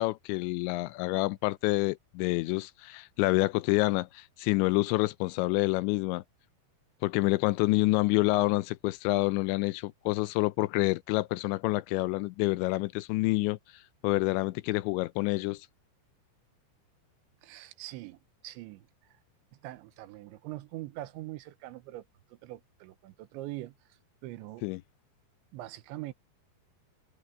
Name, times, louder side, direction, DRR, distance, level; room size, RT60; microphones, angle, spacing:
voice 1, 0.0-6.2 7.0-13.6 14.0-15.7 24.6-24.8, left 21 dB, 85° left, 2.9 m, -28 dB
voice 2, 17.4-18.9 19.6-22.1 22.3-23.7 24.2-24.7 25.5-26.1, right 16 dB, 80° right, 3.2 m, -42 dB
omnidirectional pair, 5.3 m